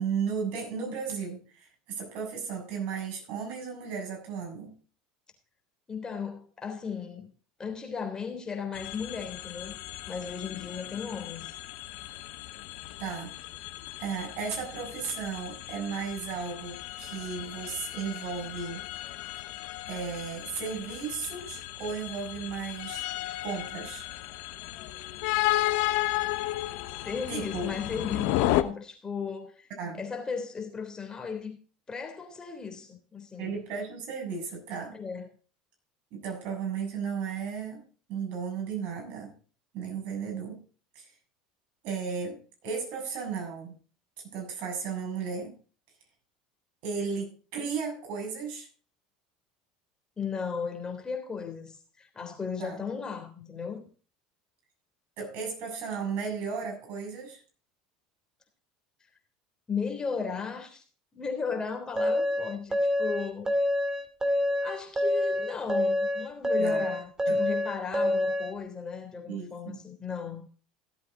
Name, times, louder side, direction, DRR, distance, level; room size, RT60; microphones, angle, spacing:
voice 1, 0.0-4.7 13.0-13.3 14.0-18.8 19.9-23.0 23.4-24.1 27.3-27.7 29.8-30.0 33.4-35.0 36.1-37.8 38.1-39.3 39.7-40.6 41.0-41.1 41.8-43.8 44.3-45.5 46.8-48.7 52.6-52.8 55.2-57.4 66.6-66.9 67.3-67.4 69.3-69.8, right 5 dB, 60° right, 7.1 m, -35 dB
voice 2, 5.9-7.3 7.6-9.8 10.1-11.5 27.0-29.7 30.0-31.6 31.9-33.5 34.9-35.3 50.2-53.8 59.7-60.8 61.1-63.5 64.6-70.5, left 5 dB, 20° left, 3.4 m, -36 dB
sound 1, 8.7-28.6, left 16 dB, 70° left, 1.1 m, -34 dB
sound 2, 62.0-68.5, left 1 dB, 15° right, 2.6 m, -27 dB
16.5 x 8.3 x 3.8 m
hypercardioid pair, 90°, 3 cm